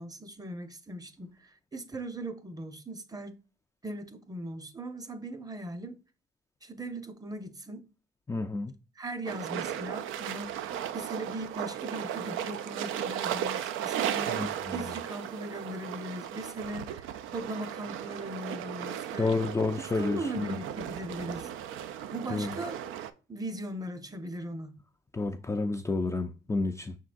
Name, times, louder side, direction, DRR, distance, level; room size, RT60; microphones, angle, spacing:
voice 1, 0.0-3.4 3.8-6.0 6.6-7.8 9.0-14.4 14.7-19.4 20.0-21.5 22.1-22.8 23.3-24.7, right 1 dB, 20° right, 0.7 m, -39 dB
voice 2, 8.3-8.7 14.3-15.0 19.2-20.6 22.3-22.6 25.1-27.0, left 3 dB, 15° left, 0.3 m, -30 dB
sound 1, 9.3-23.1, right 10 dB, 85° right, 0.4 m, -36 dB
5.5 x 3.7 x 2.5 m
cardioid pair, 90°, 20 cm